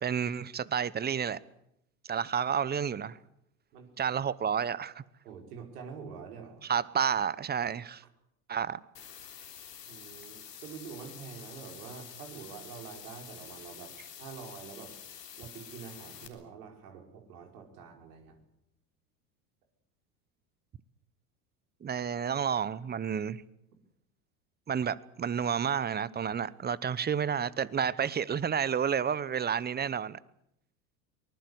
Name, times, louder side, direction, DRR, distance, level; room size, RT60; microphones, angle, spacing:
voice 1, 0.0-1.4 2.1-3.2 4.0-5.0 6.6-8.0 8.5-8.8 21.8-23.4 24.7-30.2, right 7 dB, 20° right, 0.9 m, -30 dB
voice 2, 5.2-6.7 9.9-15.0 15.4-18.4, right 6 dB, 70° right, 5.2 m, -46 dB
sound 1, 8.9-16.3, left 8 dB, 85° left, 3.7 m, -48 dB
24.0 x 20.0 x 8.0 m
hypercardioid pair, 80°, 47 cm